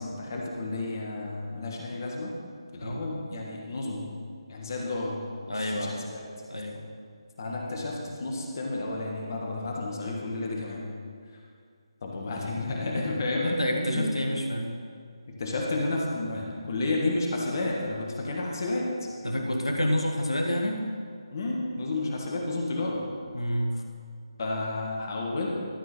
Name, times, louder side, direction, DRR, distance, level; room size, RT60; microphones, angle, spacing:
voice 1, 0.0-2.3 2.7-4.1 4.5-5.2 5.5-6.2 7.4-10.9 12.0-14.1 15.3-18.9 21.3-23.0 24.4-25.5, left 2 dB, 40° left, -1 dB, 1.6 m, -31 dB
voice 2, 5.5-6.1 6.5-6.8 13.4-14.7 19.2-20.8 23.3-23.8, equal, 80° left, 3 dB, 1.4 m, -28 dB
12.5 x 5.5 x 5.7 m, 2.2 s
figure-of-eight pair, 150°, 3 cm